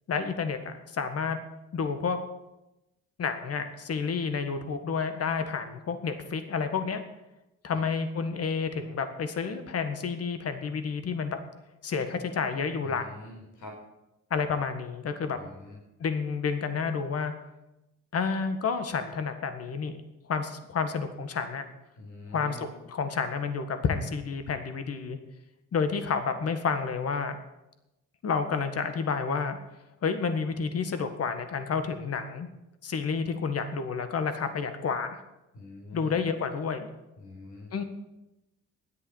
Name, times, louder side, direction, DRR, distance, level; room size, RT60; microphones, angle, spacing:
voice 1, 0.1-1.4 1.7-2.2 3.2-7.0 7.6-11.4 11.8-13.1 14.3-15.4 16.0-17.3 18.1-20.0 20.3-21.6 22.3-25.2 25.7-27.4 28.2-29.6 30.0-32.5 32.8-35.2 35.9-36.9 37.7-37.8, left 5 dB, 50° left, 9 dB, 1.7 m, -30 dB
voice 2, 12.8-13.8 15.4-15.8 22.0-22.6 35.5-36.2 37.2-37.9, left 1 dB, 75° left, 0 dB, 5.0 m, -45 dB
10.5 x 8.2 x 9.7 m, 0.94 s
cardioid pair, 90°, 30 cm